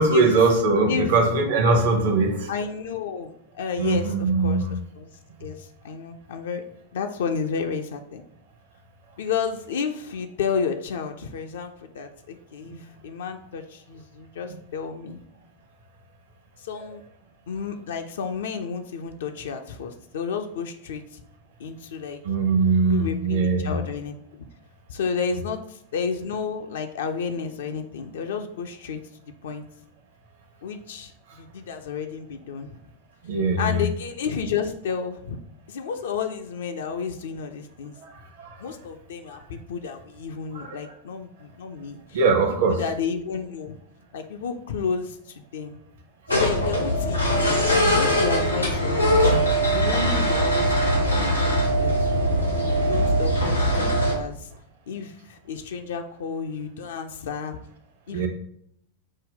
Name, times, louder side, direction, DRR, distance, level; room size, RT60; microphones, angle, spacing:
voice 1, 0.0-2.5 3.8-4.8 22.2-23.8 33.2-33.9 38.0-38.1 38.4-38.6 40.5-40.8 42.1-42.8 58.1-58.3, right 3 dB, 55° right, 3 dB, 0.7 m, -21 dB
voice 2, 0.9-1.2 2.5-5.1 5.4-6.6 6.9-8.2 9.2-15.2 16.6-17.0 17.5-21.2 21.6-22.2 22.8-24.5 24.9-29.6 30.6-32.8 33.6-35.4 35.7-38.0 38.6-42.2 42.7-43.8 44.1-45.8 46.3-49.3 49.7-52.0 52.9-54.5 54.9-57.6 58.1-58.3, left 6 dB, 60° left, 5 dB, 0.3 m, -31 dB
sound 1, 46.3-54.1, equal, 90° left, 0.9 m, -21 dB
5.2 x 2.1 x 3.7 m, 0.69 s
figure-of-eight pair, 90°, 0 cm